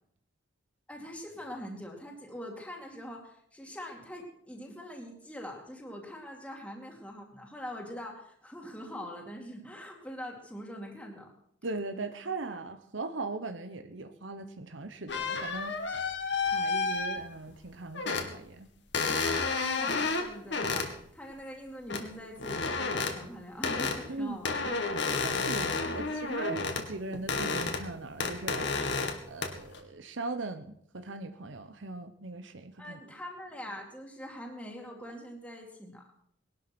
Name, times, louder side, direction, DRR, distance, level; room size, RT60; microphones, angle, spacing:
voice 1, 0.9-11.3 19.8-24.8 25.1-25.3 25.8-26.1 32.8-36.0, equal, 5° left, -1 dB, 2.5 m, -43 dB
voice 2, 11.6-16.0 16.4-18.7 24.1-24.4 25.2-28.7 29.3-33.0, right 3 dB, 80° right, 8 dB, 1.0 m, -39 dB
sound 1, 15.1-17.5 17.9-18.3 18.9-20.9 21.9-22.0 22.4-23.1 23.6-24.0 24.4-26.9 27.1-27.9 28.2-29.2 29.4-29.8, left 4 dB, 65° left, 2.2 m, -31 dB
20.0 x 12.0 x 6.1 m, 0.68 s
head